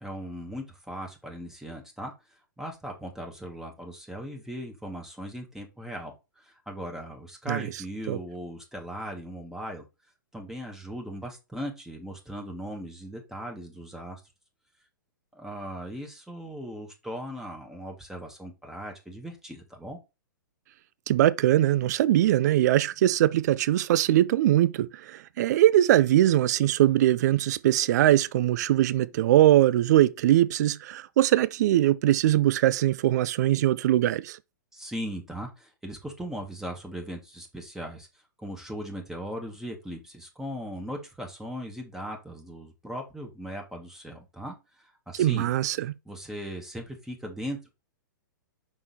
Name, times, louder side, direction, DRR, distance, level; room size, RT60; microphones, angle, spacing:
voice 1, 0.0-2.1 2.6-9.8 10.3-14.2 15.3-20.0 34.7-38.1 38.4-45.5 46.0-47.7, equal, 5° right, 1.5 m, -38 dB
voice 2, 21.1-34.4 45.1-45.9, right 13 dB, 55° right, 0.4 m, -22 dB
6.0 x 3.8 x 4.1 m
hypercardioid pair, 115°, 11 cm